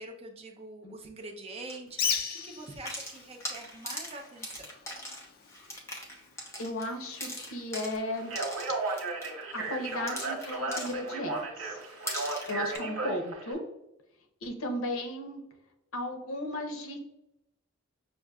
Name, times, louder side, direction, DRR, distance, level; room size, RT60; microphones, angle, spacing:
voice 1, 0.0-4.7, right 2 dB, 30° right, 3 dB, 0.6 m, -44 dB
sound 1, 1.6-1.8 2.7-11.4 11.8-12.8, left 1 dB, 15° left, 0.8 m, -41 dB
Bird, 1.9-8.5, left 7 dB, 45° left, 0.4 m, -39 dB
voice 2, 6.6-8.3 9.5-11.8 12.5-13.6 14.4-15.4 15.9-17.0, left 1 dB, 80° left, 4 dB, 0.8 m, -35 dB
Speech, 8.2-13.5, right 3 dB, 70° right, 1.1 m, -35 dB
6.2 x 2.5 x 2.3 m, 0.87 s
head